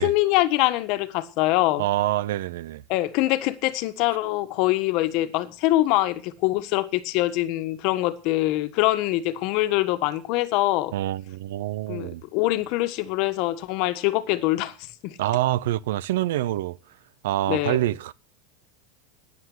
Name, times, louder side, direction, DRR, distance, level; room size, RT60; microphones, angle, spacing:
voice 1, 0.0-1.8 2.9-10.9 11.9-15.2 17.5-17.8, left 17 dB, 55° left, 1.5 m, -24 dB
voice 2, 1.8-2.8 10.9-12.2 15.2-16.8 17.2-18.1, right 14 dB, 85° right, 0.7 m, -26 dB
13.0 x 9.7 x 9.5 m
supercardioid pair, 135°, 0 cm